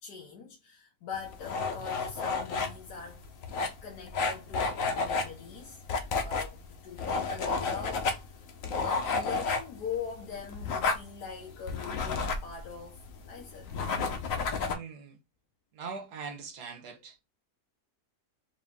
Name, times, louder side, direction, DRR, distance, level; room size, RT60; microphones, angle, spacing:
voice 1, 0.0-3.2 3.6-5.8 6.2-8.4 8.8-13.7, left 6 dB, 85° left, 1.5 m, -42 dB
sound 1, 1.1-14.7, left 4 dB, 60° left, 1.1 m, -32 dB
voice 2, 14.6-15.2 15.7-17.2, right 5 dB, 85° right, 1.5 m, -41 dB
4.8 x 2.7 x 3.4 m
omnidirectional pair, 1.7 m